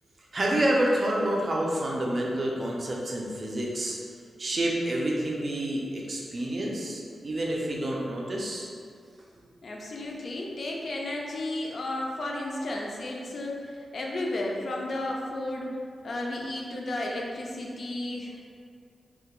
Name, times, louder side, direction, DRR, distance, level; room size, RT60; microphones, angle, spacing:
voice 1, 0.3-4.0 4.4-8.7, right 1 dB, 45° right, -3 dB, 0.4 m, -28 dB
voice 2, 9.6-15.7 16.0-18.5, left 1 dB, 60° left, -1 dB, 0.4 m, -33 dB
2.3 x 2.1 x 2.9 m, 2.2 s
wide cardioid pair, 95°, 0 cm